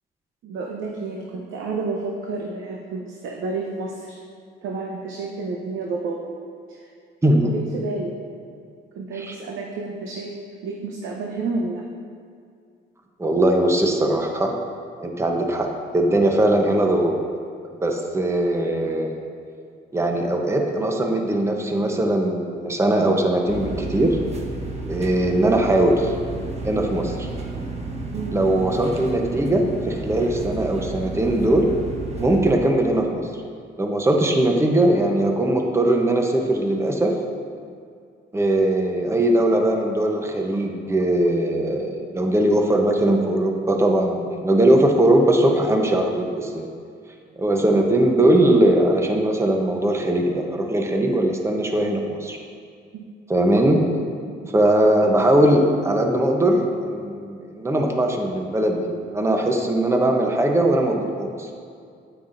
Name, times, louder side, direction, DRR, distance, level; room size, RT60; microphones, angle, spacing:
voice 1, 0.4-4.2 4.6-6.2 6.7-6.9 7.4-8.2 8.9-10.3 10.6-11.8 28.1-28.4 52.9-53.0 54.3-54.5, right 3 dB, 80° right, -1 dB, 0.8 m, -30 dB
voice 2, 7.2-7.5 9.2-9.3 13.2-14.5 15.0-17.2 17.8-19.2 19.9-24.2 24.9-26.1 26.6-27.3 28.3-31.7 32.2-33.3 33.8-37.2 38.3-46.7 47.4-52.4 53.3-53.8 54.5-61.5, right 1 dB, 15° right, 2 dB, 0.9 m, -20 dB
sound 1, 23.5-32.5, right 3 dB, 35° right, 1.1 m, -32 dB
9.4 x 8.9 x 2.6 m, 2.3 s
cardioid pair, 90°, 20 cm